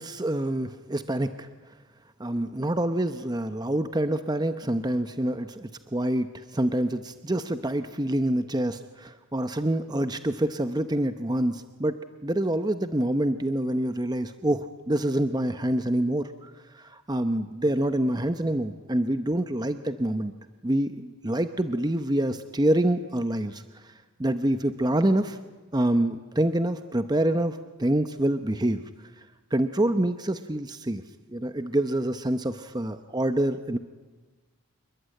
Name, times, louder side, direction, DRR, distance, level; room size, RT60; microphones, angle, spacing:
voice 1, 0.0-1.5 2.2-20.3 20.6-23.9 24.2-25.4 25.7-28.8 29.5-31.0 31.3-33.8, right 1 dB, 20° right, 9 dB, 0.8 m, -26 dB
28.0 x 21.5 x 9.2 m, 1.3 s
head